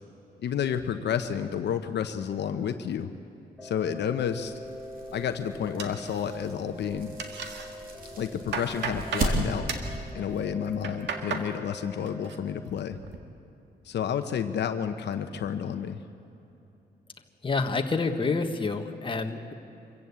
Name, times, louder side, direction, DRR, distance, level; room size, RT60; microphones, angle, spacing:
voice 1, 0.4-3.1 3.6-4.5 5.1-7.1 8.1-9.7 10.1-13.0 13.8-16.0, left 8 dB, 75° left, 8 dB, 1.0 m, -30 dB
sound 1, 3.6-12.3, equal, ahead, 4.0 m, -43 dB
sound 2, 4.3-9.9, right 2 dB, 55° right, 3.4 m, -35 dB
sound 3, 5.8-6.6 6.9-7.7 8.1-9.3 9.7-10.0 10.6-11.5 11.9-12.4 12.7-13.2, right 5 dB, 85° right, 1.9 m, -35 dB
voice 2, 17.4-19.5, left 4 dB, 30° left, 5 dB, 1.4 m, -28 dB
25.5 x 15.5 x 8.4 m, 2.9 s
cardioid pair, 110°, 18 cm